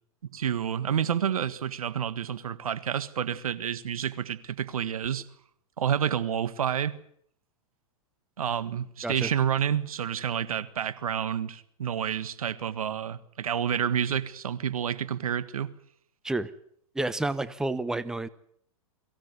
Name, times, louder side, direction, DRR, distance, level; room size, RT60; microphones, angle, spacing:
voice 1, 0.2-5.3 5.8-7.0 8.4-15.7, right 9 dB, 85° right, 1.6 m, -29 dB
voice 2, 16.9-18.3, right 2 dB, 5° right, 0.9 m, -30 dB
23.0 x 16.0 x 9.6 m
hypercardioid pair, 125°, 18 cm